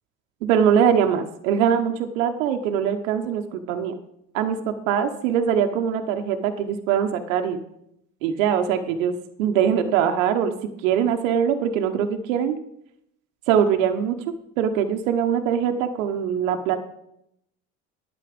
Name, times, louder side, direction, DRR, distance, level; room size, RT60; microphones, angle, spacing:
voice 1, 0.4-3.9 4.3-7.6 8.2-12.6 13.5-14.2 14.6-16.8, right 8 dB, 85° right, 6 dB, 1.0 m, -22 dB
11.0 x 8.6 x 5.2 m, 0.78 s
hypercardioid pair, 70°, 39 cm